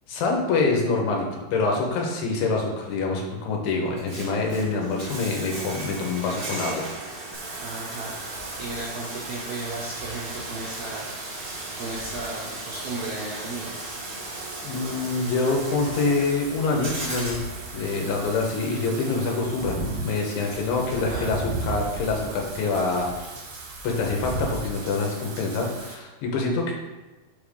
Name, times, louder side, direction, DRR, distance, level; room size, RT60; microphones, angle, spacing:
voice 1, 0.1-6.9 14.6-17.4 17.7-23.4 23.8-26.7, left 3 dB, 80° left, 0 dB, 2.8 m, -26 dB
Bathtub (filling or washing), 3.8-19.8, right 2 dB, 50° right, 1.0 m, -37 dB
Wind / Rain, 7.3-25.9, right 2 dB, 65° right, 2.2 m, -37 dB
voice 2, 7.6-8.2 8.6-11.1 11.8-13.7 20.9-21.5, right 2 dB, 85° right, -6 dB, 1.3 m, -35 dB
5.6 x 3.5 x 5.2 m, 1.1 s
omnidirectional pair, 4.2 m